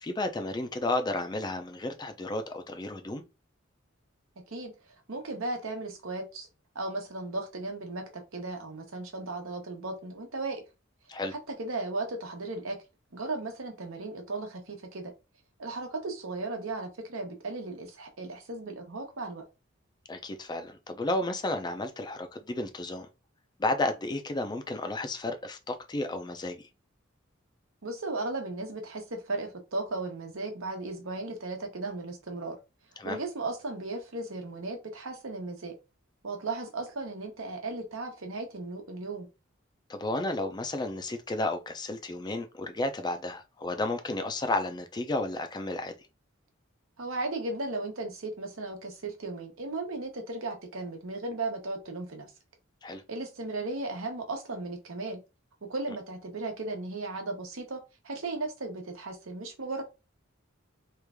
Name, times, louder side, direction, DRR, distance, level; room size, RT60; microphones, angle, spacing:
voice 1, 0.0-3.2 11.1-11.3 20.1-23.1 23.6-26.7 33.0-33.2 39.9-45.9 52.8-53.0, left 2 dB, 20° left, 0.4 m, -32 dB
voice 2, 5.1-6.5 6.7-10.6 11.6-12.8 13.1-15.1 15.6-19.4 27.8-32.6 33.0-35.7 36.2-39.3 47.0-52.3 53.1-55.2 55.6-59.8, right 2 dB, 85° right, 1.0 m, -36 dB
3.1 x 2.4 x 3.4 m
head